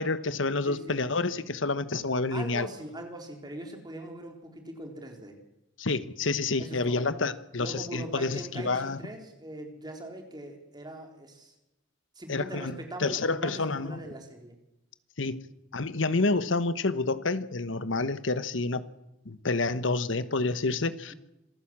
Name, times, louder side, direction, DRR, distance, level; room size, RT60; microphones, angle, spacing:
voice 1, 0.0-2.7 5.8-9.0 12.3-14.0 15.2-15.4 15.7-18.8 19.2-21.1, left 3 dB, 80° left, 13 dB, 1.2 m, -29 dB
voice 2, 0.6-1.0 2.3-5.4 6.6-7.1 7.6-11.5 12.2-14.5, right 1 dB, 20° right, 3 dB, 3.9 m, -41 dB
26.5 x 14.5 x 7.5 m, 0.91 s
head